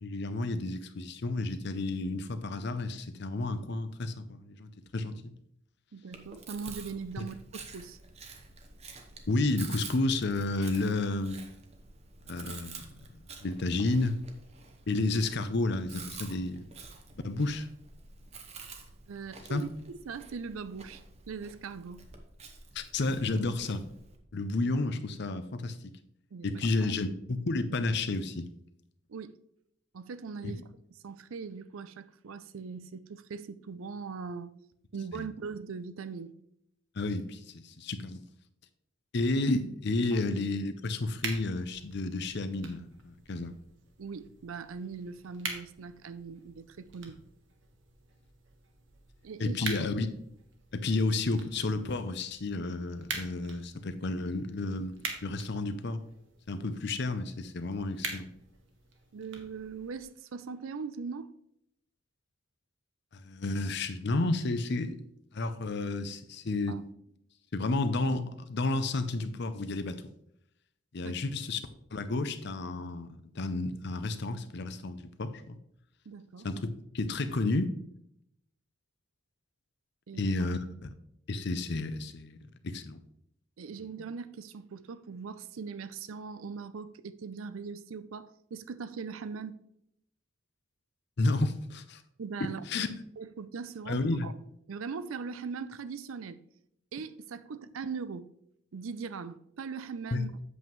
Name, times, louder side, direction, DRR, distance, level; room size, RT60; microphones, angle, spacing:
voice 1, 0.0-5.3 7.2-7.3 9.3-11.4 12.3-12.9 13.4-14.2 14.9-16.6 17.2-17.7 19.5-19.6 22.7-23.9 24.3-25.9 26.4-28.5 30.4-30.5 35.1-35.3 37.0-38.2 39.1-43.5 49.4-50.1 50.7-54.9 55.2-56.0 56.5-58.3 63.1-65.0 65.3-66.8 67.5-70.0 70.9-71.6 71.9-75.6 76.4-77.7 80.1-80.9 81.3-82.4 82.6-83.0 91.2-92.0 92.4-92.9 93.9-94.3 100.1-100.3, left 2 dB, 55° left, 0.6 m, -31 dB
voice 2, 5.9-8.0 19.1-22.1 26.3-26.9 29.1-29.3 29.9-30.6 31.0-34.5 34.9-36.3 44.0-47.2 49.2-49.6 59.1-61.3 66.7-66.8 71.0-71.1 76.1-76.5 80.1-80.5 83.6-89.6 92.2-92.9 93.2-94.3 94.7-96.4 96.9-98.3 98.7-100.3, right 5 dB, 85° right, 0.5 m, -40 dB
Chewing mastication, 6.1-24.2, right 4 dB, 30° right, 0.8 m, -49 dB
sound 1, 41.1-60.1, right 4 dB, 65° right, 1.3 m, -45 dB
8.1 x 7.2 x 3.1 m
head